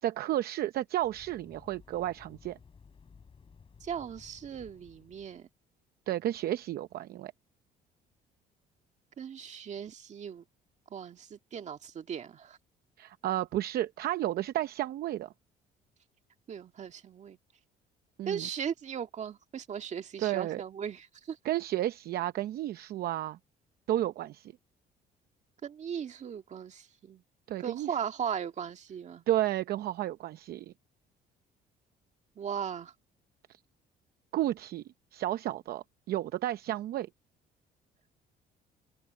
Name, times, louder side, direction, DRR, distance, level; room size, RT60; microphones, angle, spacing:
voice 1, 0.0-2.6 6.1-7.3 13.0-15.3 18.2-18.5 20.2-20.6 21.4-23.4 23.9-24.5 27.5-27.9 29.3-30.7 34.3-34.8 35.1-37.1, right 13 dB, 65° right, 0.7 m, -32 dB
sound 1, 1.0-5.5, left 5 dB, 30° left, 5.6 m, -56 dB
voice 2, 3.8-5.5 9.2-10.4 10.9-12.6 16.5-17.4 18.3-21.4 25.6-27.2 27.6-29.2 32.4-32.9, right 8 dB, 45° right, 2.0 m, -38 dB
cardioid pair, 110°, 17 cm